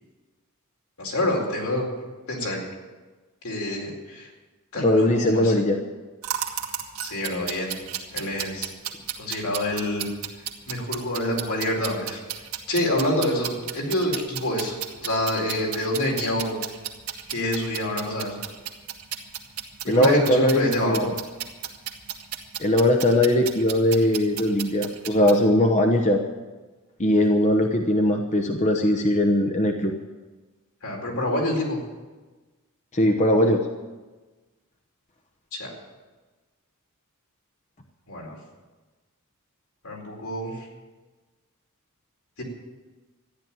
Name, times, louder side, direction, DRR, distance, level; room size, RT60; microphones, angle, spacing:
voice 1, 1.0-1.9 2.3-2.6 3.4-4.3 4.7-5.5 7.0-7.8 8.1-8.7 9.2-10.1 10.7-12.2 12.7-14.7 15.0-16.6 17.3-18.3 19.8-21.0 30.8-31.8 35.5-35.7 38.1-38.3 39.8-40.6 42.4-42.5, left 1 dB, 75° left, -1 dB, 4.4 m, -27 dB
voice 2, 4.7-5.8 19.9-21.1 22.6-26.2 27.0-29.9 32.9-33.7, left 1 dB, 35° left, 4 dB, 1.0 m, -20 dB
sound 1, 6.2-25.4, right 9 dB, 70° right, 1.7 m, -34 dB
13.5 x 10.5 x 9.1 m, 1.3 s
head